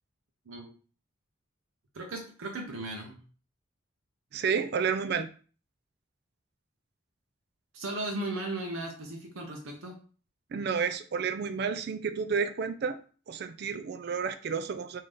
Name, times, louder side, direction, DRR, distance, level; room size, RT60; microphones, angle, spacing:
voice 1, 1.9-3.2 7.7-10.0, right 2 dB, 85° right, 1 dB, 0.7 m, -36 dB
voice 2, 4.3-5.3 10.5-13.0 13.3-15.0, right 6 dB, 55° right, 10 dB, 0.3 m, -31 dB
3.6 x 2.7 x 3.2 m, 0.39 s
head